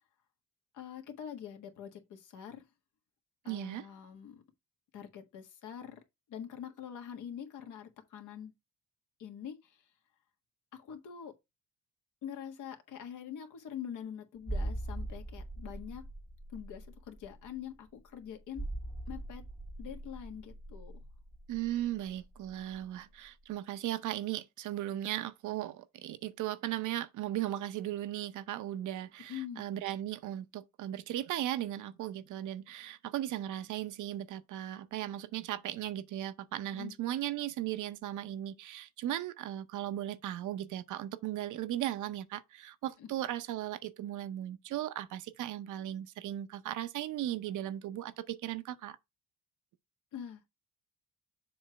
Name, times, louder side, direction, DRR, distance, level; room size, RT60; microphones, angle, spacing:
voice 1, 0.7-2.6 3.4-4.4 4.9-6.0 6.3-8.5 9.2-9.8 10.7-11.3 12.2-16.0 16.5-18.6 19.1-19.4 19.8-20.9 29.3-29.6 36.7-36.9 43.0-43.1 50.1-50.4, left 9 dB, 80° left, 1.5 m, -44 dB
voice 2, 3.5-3.9 21.5-49.0, right 13 dB, 80° right, 0.7 m, -37 dB
sound 1, 14.4-22.9 23.1-23.3, right 1 dB, ahead, 0.8 m, -41 dB
7.1 x 3.2 x 5.7 m
cardioid pair, 90°, 30 cm